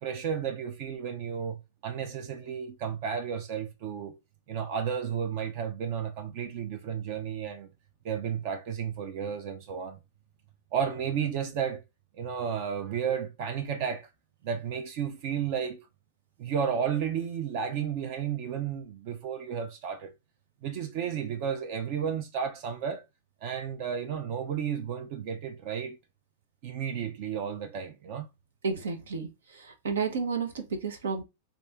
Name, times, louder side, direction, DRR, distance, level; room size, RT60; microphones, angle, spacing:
voice 1, 0.0-4.2 4.5-7.7 8.0-10.0 10.7-11.8 12.1-14.1 14.4-15.9 16.4-20.1 20.6-23.0 23.4-26.0 26.6-28.3, right 7 dB, 50° right, 0.5 m, -32 dB
voice 2, 28.6-31.2, right 5 dB, 90° right, 1.1 m, -32 dB
3.4 x 2.6 x 3.5 m
hypercardioid pair, 130°, 0 cm